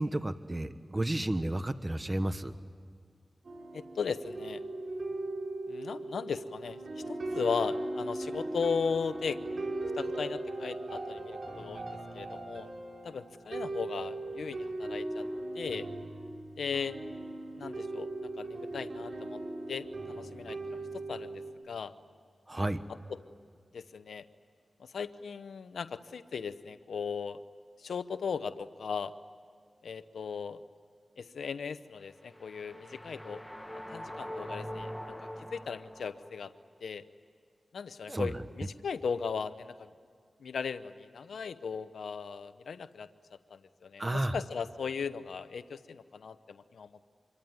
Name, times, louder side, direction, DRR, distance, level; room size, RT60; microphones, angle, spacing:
voice 1, 0.0-2.5 22.5-22.8 38.1-38.3 44.0-44.3, right 1 dB, 25° right, 11 dB, 1.2 m, -32 dB
sound 1, 3.4-21.5, right 2 dB, 65° right, 5.7 m, -38 dB
voice 2, 3.7-4.6 5.7-9.4 9.9-11.9 12.1-12.7 13.0-15.3 15.5-15.9 16.6-17.0 17.5-18.1 18.4-19.4 19.7-20.8 21.1-21.9 23.7-24.3 24.8-27.4 27.8-29.1 29.8-30.6 31.2-33.4 33.7-34.9 35.5-36.5 36.8-37.0 37.7-39.9 40.4-43.1 43.5-47.1, left 6 dB, 90° left, 12 dB, 0.8 m, -37 dB
sound 2, 32.2-36.5, equal, 5° left, 1.7 m, -43 dB
27.0 x 23.5 x 9.4 m, 2.1 s
cardioid pair, 50°, 0 cm